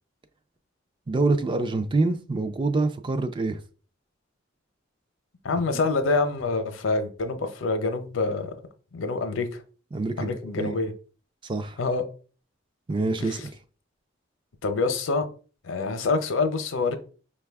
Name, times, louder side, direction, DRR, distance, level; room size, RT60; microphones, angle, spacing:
voice 1, 1.1-3.6 5.7-5.8 9.9-10.7 11.4-11.8 12.9-13.5, right 3 dB, 25° right, 0.3 m, -26 dB
voice 2, 5.4-8.5 8.9-9.6 10.2-10.9 11.8-12.0 14.6-15.3 15.6-17.0, left 3 dB, 80° left, 0.6 m, -26 dB
5.2 x 2.3 x 3.4 m
head